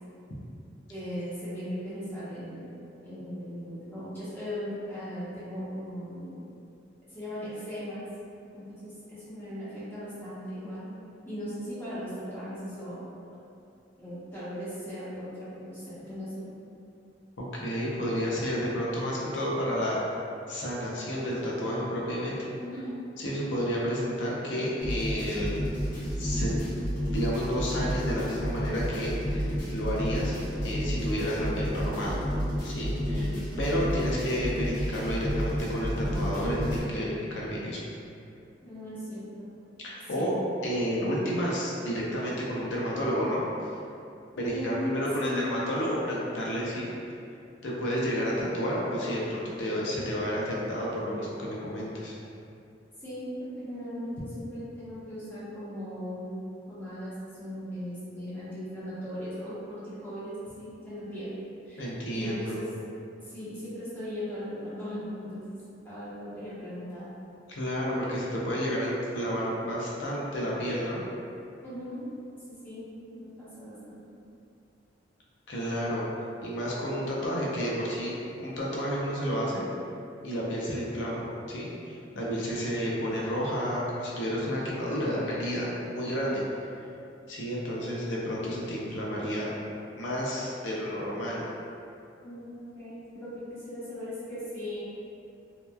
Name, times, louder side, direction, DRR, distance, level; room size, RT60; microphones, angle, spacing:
voice 1, 0.9-2.7 3.0-6.5 7.1-8.0 8.5-10.9 11.2-13.0 14.0-16.4 22.6-22.9 33.1-33.4 38.6-39.5 40.1-40.3 41.0-41.1 44.3-44.9 45.2-45.4 53.0-53.3 53.6-57.1 57.4-61.4 61.6-62.7 63.2-65.6 65.8-67.1 68.3-68.4 71.6-72.0 72.5-72.9 73.1-74.0 92.2-94.8, equal, 10° left, -12 dB, 0.8 m, -38 dB
voice 2, 17.5-22.4 23.2-25.6 26.2-26.5 27.1-30.4 30.6-32.2 32.6-33.3 33.6-37.8 39.8-40.3 40.6-43.7 44.4-46.9 47.6-52.1 61.8-62.6 67.5-71.0 75.5-76.1 76.4-78.1 78.4-79.6 80.2-81.2 81.5-81.7 82.1-86.4 87.3-89.5 89.9-91.4, equal, 80° left, -5 dB, 0.6 m, -31 dB
sound 1, 24.8-36.8, equal, 45° left, 0.9 m, -31 dB
2.8 x 2.1 x 2.2 m, 2.6 s
head